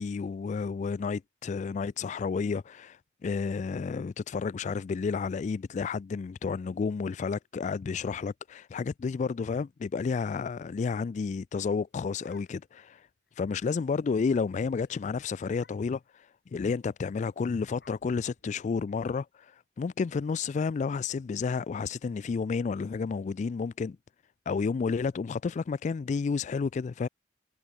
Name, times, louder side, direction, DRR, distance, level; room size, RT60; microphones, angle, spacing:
voice 1, 0.0-13.1 13.4-16.3 16.5-24.0 24.5-27.1, left 5 dB, 40° left, 0.3 m, -31 dB
sound 1, 11.7-12.9 13.3-13.4 13.6-14.0 14.3-14.5 14.8-14.9 15.5-16.1 17.0-19.0, left 3 dB, 60° left, 4.8 m, -61 dB
head